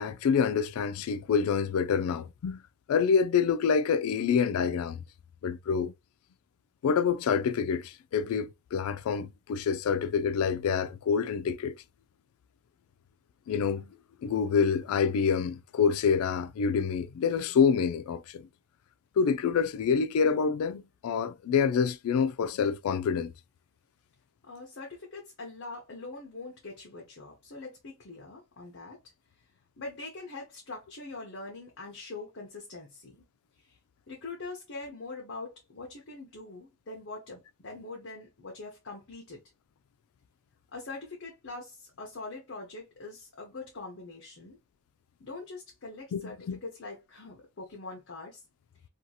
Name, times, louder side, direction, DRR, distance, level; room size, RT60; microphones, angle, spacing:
voice 1, 0.0-2.6 2.9-5.0 5.4-5.9 6.8-11.7 13.5-13.9 14.2-18.5 19.2-23.3 46.1-46.6, left 6 dB, 80° left, 0.3 m, -27 dB
voice 2, 24.4-29.0 29.8-33.2 33.6-33.8 34.1-39.4 40.7-44.6 45.2-48.4, left 3 dB, 55° left, 0.7 m, -43 dB
2.7 x 2.3 x 2.7 m
head